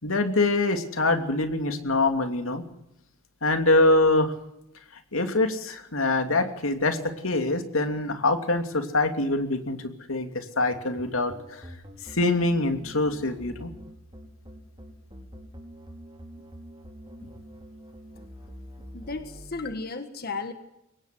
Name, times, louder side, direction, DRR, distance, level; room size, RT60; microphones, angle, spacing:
voice 1, 0.0-2.6 3.4-4.3 5.1-11.6 12.1-13.7, left 2 dB, 85° left, 7 dB, 2.9 m, -24 dB
sound 1, 10.7-19.6, equal, 25° right, 5.2 m, -45 dB
voice 2, 18.9-20.5, left 3 dB, 50° left, 8 dB, 1.6 m, -34 dB
23.5 x 19.0 x 7.8 m, 0.84 s
head